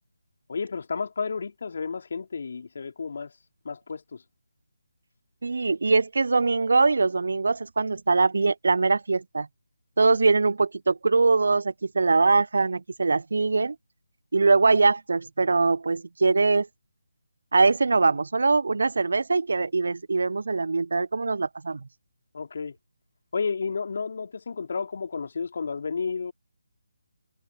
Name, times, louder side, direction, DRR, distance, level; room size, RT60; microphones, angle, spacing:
voice 1, 0.5-3.3 3.6-4.2 22.3-22.8 23.3-26.3, left 5 dB, 55° left, 3.1 m, -31 dB
voice 2, 5.4-9.5 10.0-13.8 14.3-16.7 17.5-21.8, right 3 dB, 65° right, 0.3 m, -22 dB
figure-of-eight pair, 155°, 0 cm